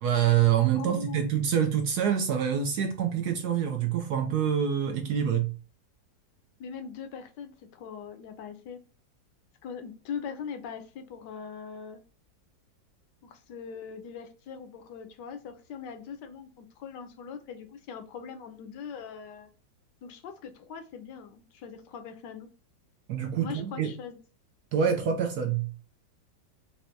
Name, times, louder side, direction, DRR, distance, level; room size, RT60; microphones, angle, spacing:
voice 1, 0.0-5.5 23.1-23.9 24.7-25.7, right 8 dB, 70° right, 4 dB, 1.0 m, -26 dB
voice 2, 0.7-1.3 6.6-8.8 9.6-12.0 13.2-19.5 20.0-22.5 23.4-24.2, left 6 dB, 75° left, 8 dB, 1.3 m, -41 dB
5.4 x 2.1 x 2.6 m, 0.37 s
omnidirectional pair, 2.0 m